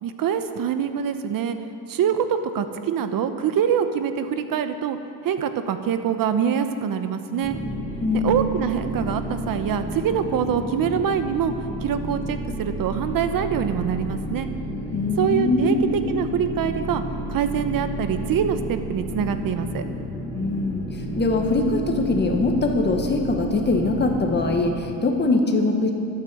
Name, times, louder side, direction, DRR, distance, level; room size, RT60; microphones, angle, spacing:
voice 1, 0.0-1.6 1.9-5.0 5.2-7.6 8.1-14.5 15.2-17.0 17.3-19.8, right 8 dB, 55° right, 9 dB, 1.0 m, -24 dB
sound 1, 7.4-24.7, equal, 10° left, 2.1 m, -31 dB
voice 2, 8.0-8.4 14.9-15.8 20.3-20.8 21.2-25.9, left 2 dB, 25° left, 2 dB, 1.6 m, -22 dB
12.0 x 9.0 x 7.8 m, 2.6 s
cardioid pair, 130°, 40 cm